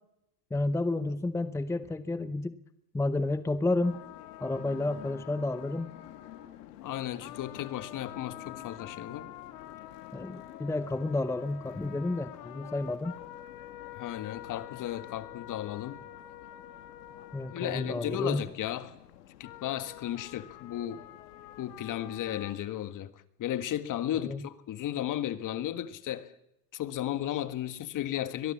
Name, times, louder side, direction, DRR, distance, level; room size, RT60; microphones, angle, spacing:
voice 1, 0.5-2.6 2.9-4.0 4.4-5.9 10.1-13.1 17.3-18.4 24.1-24.5, left 2 dB, 5° left, 0.7 m, -31 dB
sound 1, 3.8-22.6, left 13 dB, 80° left, 2.1 m, -47 dB
voice 2, 6.8-9.3 14.0-16.0 17.5-18.9 19.4-21.0 21.6-23.1 23.4-26.3 26.7-28.5, left 12 dB, 40° left, 1.7 m, -34 dB
23.0 x 19.5 x 7.3 m
supercardioid pair, 105°, 47 cm